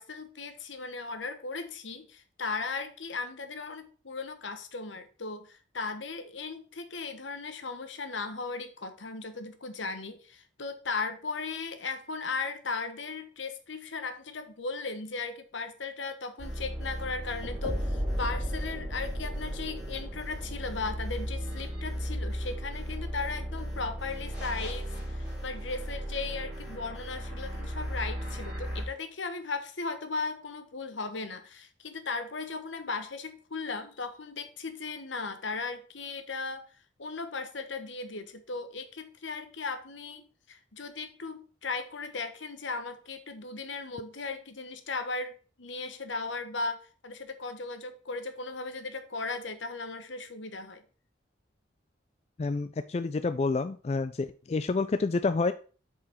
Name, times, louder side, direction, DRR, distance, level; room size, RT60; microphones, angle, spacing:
voice 1, 0.0-36.7 37.0-50.8, left 4 dB, 80° left, 9 dB, 1.2 m, -37 dB
sound 1, 16.4-28.8, equal, 5° right, 4.3 m, -35 dB
voice 2, 52.4-55.5, left 3 dB, 35° left, 11 dB, 0.3 m, -28 dB
8.4 x 4.9 x 4.4 m, 0.38 s
head